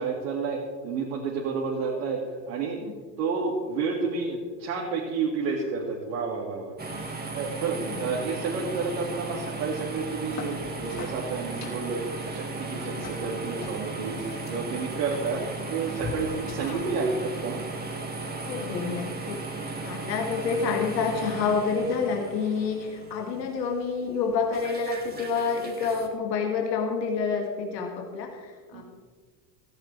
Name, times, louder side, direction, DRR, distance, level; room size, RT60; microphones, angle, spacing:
voice 1, 0.0-2.8 3.2-6.7 7.3-14.2 14.5-15.4 15.7-17.6 28.7-28.8, right 4 dB, 70° right, -3 dB, 2.3 m, -30 dB
sound 1, 6.8-26.1, right 3 dB, 20° right, 2.1 m, -36 dB
voice 2, 7.8-8.1 12.8-13.0 16.6-16.8 18.4-28.8, left 5 dB, 75° left, 2 dB, 2.2 m, -28 dB
sound 2, 10.0-17.0, left 3 dB, 30° left, 3.4 m, -43 dB
16.5 x 14.5 x 3.4 m, 1.5 s
hypercardioid pair, 80°, 50 cm